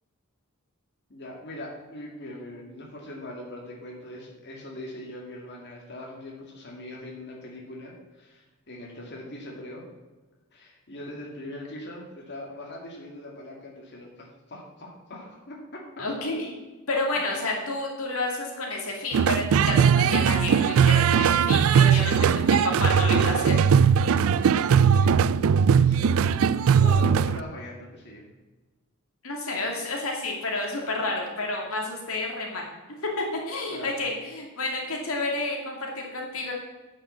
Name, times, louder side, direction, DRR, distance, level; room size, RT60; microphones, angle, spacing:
voice 1, 1.1-9.8 10.5-16.0 17.6-17.7 22.0-22.1 24.0-28.2 33.7-34.0, left 1 dB, 55° left, -2 dB, 2.3 m, -41 dB
voice 2, 16.0-16.5 16.9-23.6 29.2-32.7 33.0-36.5, left 2 dB, 70° left, 0 dB, 2.4 m, -30 dB
sound 1, 19.1-27.4, right 7 dB, 70° right, 0.3 m, -20 dB
10.5 x 6.4 x 7.1 m, 1.2 s
head